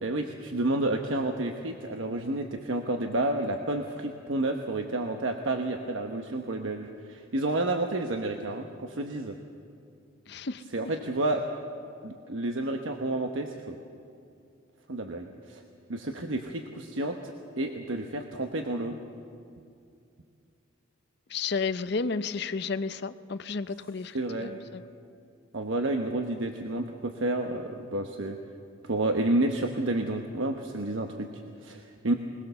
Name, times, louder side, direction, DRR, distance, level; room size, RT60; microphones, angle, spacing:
voice 1, 0.0-9.4 10.7-11.4 12.0-13.8 14.9-15.6 15.9-19.0 24.1-24.5 25.5-28.4 28.8-32.1, right 2 dB, 75° right, 4 dB, 1.1 m, -30 dB
voice 2, 10.3-10.6 21.3-24.8, left 4 dB, 55° left, 12 dB, 0.6 m, -32 dB
21.0 x 20.5 x 6.9 m, 2.5 s
head